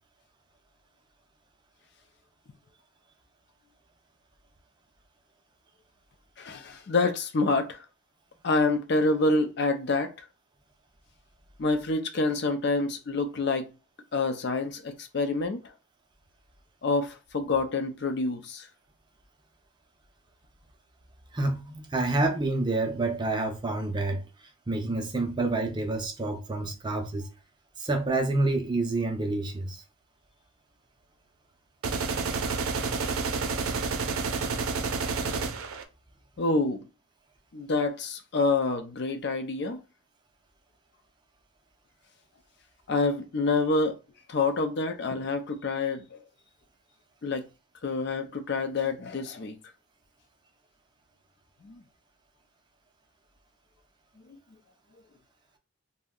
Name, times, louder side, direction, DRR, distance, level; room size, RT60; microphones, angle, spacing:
voice 1, 6.4-7.8 8.4-10.1 11.6-13.7 14.1-15.7 16.8-18.7 36.4-36.9 37.5-39.8 42.9-44.0 44.3-46.2 47.2-47.5 47.8-49.6 51.6-51.8 54.3-54.4, left 3 dB, 50° left, 0.4 m, -27 dB
voice 2, 21.3-27.3 27.8-29.8, right 2 dB, 20° right, 0.4 m, -28 dB
sound 1, 31.8-35.8, right 4 dB, 85° right, 0.5 m, -29 dB
2.6 x 2.1 x 3.6 m
head